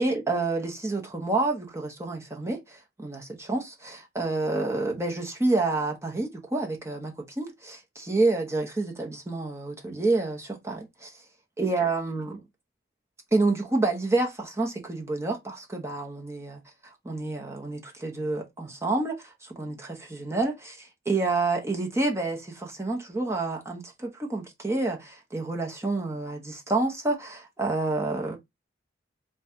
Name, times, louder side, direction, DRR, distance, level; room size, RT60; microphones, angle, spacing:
voice 1, 0.0-11.2 11.6-12.4 13.3-28.4, right 2 dB, 15° right, 0.9 m, -28 dB
4.0 x 2.4 x 4.3 m
head